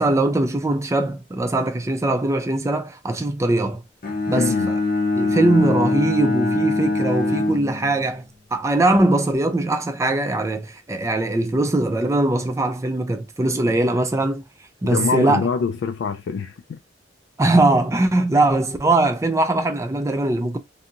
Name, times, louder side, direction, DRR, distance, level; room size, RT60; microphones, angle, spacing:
voice 1, 0.0-3.8 4.3-4.8 5.2-8.2 8.5-14.4 14.8-15.4 17.4-20.6, right 2 dB, 15° right, 0.4 m, -21 dB
Bowed string instrument, 4.0-8.3, left 2 dB, 50° left, 0.7 m, -23 dB
voice 2, 4.3-4.8 14.8-16.8, left 5 dB, 75° left, 0.3 m, -25 dB
2.7 x 2.3 x 2.7 m
head